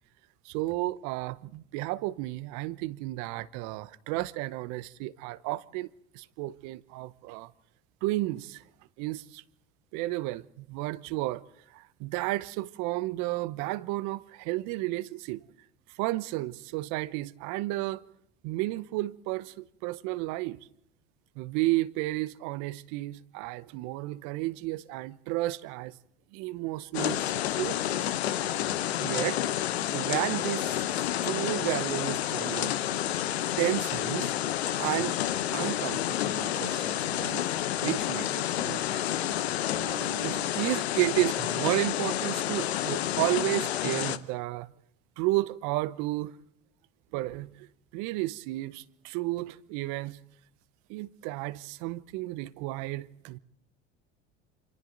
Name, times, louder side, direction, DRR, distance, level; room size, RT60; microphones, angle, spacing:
voice 1, 0.4-5.9 6.1-7.5 8.0-8.6 9.0-9.4 9.9-11.4 11.7-15.4 16.0-18.0 18.4-20.6 21.4-26.0 26.3-27.2 27.6-28.1 29.0-29.4 29.9-32.7 33.2-33.3 33.6-34.3 34.7-35.2 35.5-37.4 37.8-38.8 39.5-44.7 45.2-46.4 47.1-47.7 47.9-50.2 50.9-53.4, right 18 dB, 70° right, 1.0 m, -32 dB
sound 1, 26.9-44.2, left 12 dB, 90° left, 0.9 m, -30 dB
29.0 x 25.5 x 4.0 m
hypercardioid pair, 75°, 31 cm